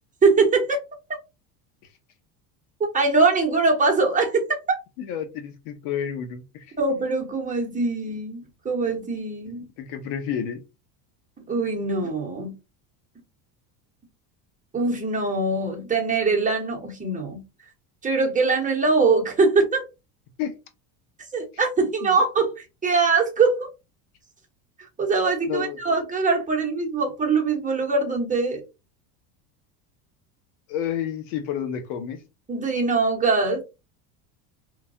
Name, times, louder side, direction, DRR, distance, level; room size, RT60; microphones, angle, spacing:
voice 1, 0.2-0.8 2.9-4.8 6.8-9.6 11.5-12.5 14.7-17.4 18.0-19.8 21.3-23.7 25.0-28.6 32.5-33.6, right 4 dB, 15° right, 0.8 m, -22 dB
voice 2, 5.0-6.7 9.8-10.6 20.4-20.5 22.0-22.2 25.5-25.8 30.7-32.2, left 8 dB, 70° left, 0.8 m, -30 dB
3.1 x 2.2 x 2.6 m
supercardioid pair, 110°, 48 cm